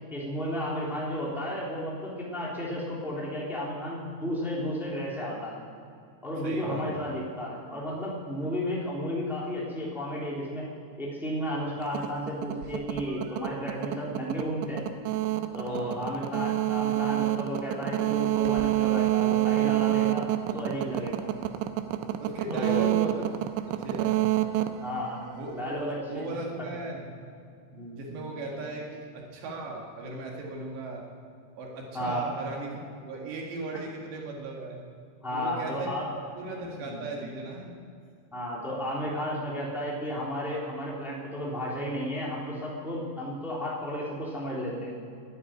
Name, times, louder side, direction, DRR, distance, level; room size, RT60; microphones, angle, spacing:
voice 1, 0.1-5.6 6.2-10.6 11.0-14.8 15.5-20.3 20.5-21.3 22.5-22.9 24.8-25.2 25.5-26.4 27.7-28.0 31.9-32.2 35.2-36.1 36.7-37.0 38.3-44.9, equal, ahead, -5 dB, 2.6 m, -33 dB
voice 2, 6.4-7.0 15.7-16.1 20.5-20.7 22.2-23.2 23.7-24.2 25.3-25.8 26.1-27.1 27.9-31.0 31.6-34.8 35.3-35.9 36.4-37.8, right 2 dB, 65° right, -1 dB, 4.0 m, -37 dB
sound 1, 11.8-25.7, right 15 dB, 85° right, 2.9 m, -28 dB
12.5 x 11.5 x 9.4 m, 2.4 s
omnidirectional pair, 5.5 m